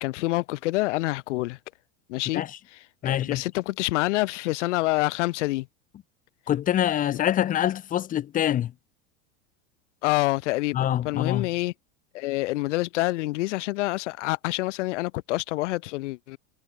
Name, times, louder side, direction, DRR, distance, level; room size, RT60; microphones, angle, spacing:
voice 1, 0.0-1.6 2.1-2.4 3.0-5.7 10.0-11.7 12.1-16.4, left 20 dB, 75° left, 1.2 m, -27 dB
voice 2, 3.0-3.4 6.5-8.7 10.7-11.5, left 11 dB, 25° left, 1.0 m, -25 dB
supercardioid pair, 155°, 36 cm